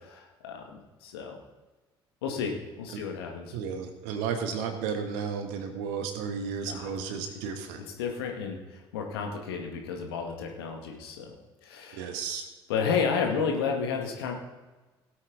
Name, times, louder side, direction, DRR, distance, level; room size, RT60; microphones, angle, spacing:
voice 1, 0.0-1.4 2.2-3.6 6.6-6.9 8.0-11.3 11.6-12.1 12.7-14.3, left 6 dB, 75° left, 2 dB, 1.9 m, -32 dB
voice 2, 3.5-7.8 11.9-12.4, right 6 dB, 65° right, 6 dB, 1.6 m, -33 dB
17.5 x 8.5 x 4.0 m, 1.2 s
figure-of-eight pair, 50°, 13 cm